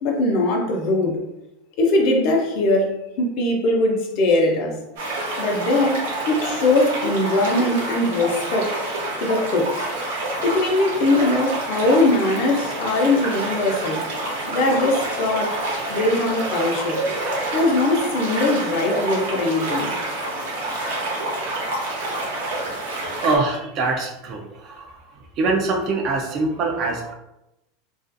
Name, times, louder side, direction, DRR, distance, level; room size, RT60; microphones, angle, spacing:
voice 1, 0.0-1.2 1.8-4.8 5.4-8.8 9.2-9.8 10.4-14.0 14.5-15.6 15.9-17.0 17.5-19.9, left 2 dB, 50° left, 1 dB, 0.6 m, -21 dB
sound 1, 5.0-23.4, right 2 dB, 80° right, 0.9 m, -27 dB
voice 2, 23.2-25.0 25.4-27.1, right 3 dB, 35° right, 2 dB, 0.4 m, -23 dB
2.4 x 2.3 x 2.5 m, 0.90 s
supercardioid pair, 155°, 0 cm